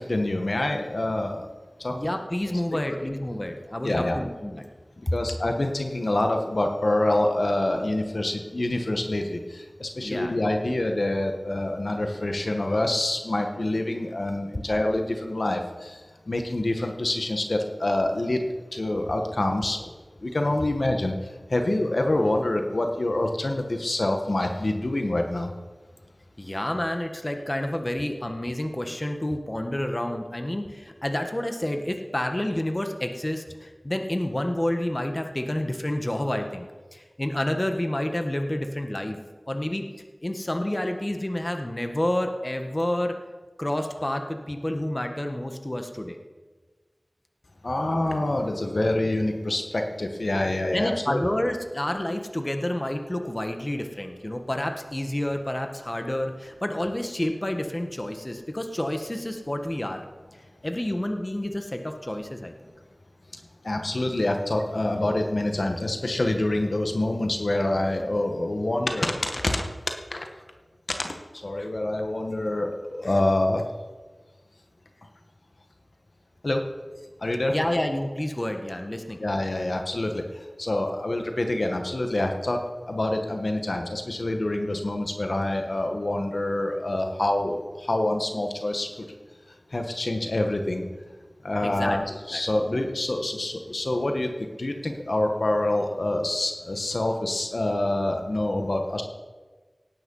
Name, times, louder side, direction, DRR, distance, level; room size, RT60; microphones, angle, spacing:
voice 1, 0.0-1.5 1.8-2.0 3.8-4.2 5.1-16.0 16.3-18.4 18.7-19.9 20.2-21.2 21.5-25.5 47.6-51.2 63.6-69.7 70.1-70.3 71.0-71.1 71.4-73.6 76.4-76.6 77.2-77.5 79.2-89.1 89.7-90.8 91.4-94.3 94.6-99.0, left 1 dB, 70° left, 4 dB, 1.4 m, -26 dB
voice 2, 1.9-4.7 5.1-5.2 10.0-10.5 26.4-36.6 36.9-39.2 39.5-39.9 40.2-43.1 43.6-46.2 50.7-60.0 60.6-62.5 77.5-79.2 91.6-92.4 92.7-92.8, left 1 dB, 30° left, 5 dB, 1.5 m, -29 dB
18.0 x 9.4 x 5.5 m, 1.3 s
wide cardioid pair, 45°, 0 cm